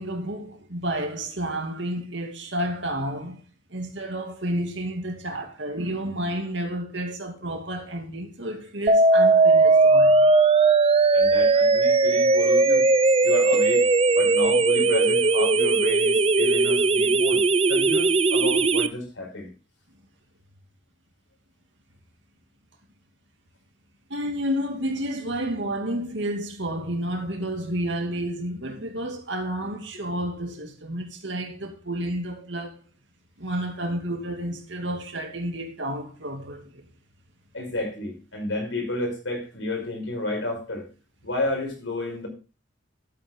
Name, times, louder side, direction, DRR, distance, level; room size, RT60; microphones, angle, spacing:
voice 1, 0.0-3.4 3.7-10.3 24.1-32.8 33.4-36.8, right 1 dB, 65° right, 2.5 m, -30 dB
sound 1, 8.9-18.9, right 3 dB, 30° right, 0.6 m, -19 dB
voice 2, 11.1-12.9 13.2-13.8 14.2-17.4 17.7-19.5 37.5-40.9 41.2-42.3, left 2 dB, 85° left, 5.4 m, -31 dB
12.5 x 8.4 x 3.8 m
head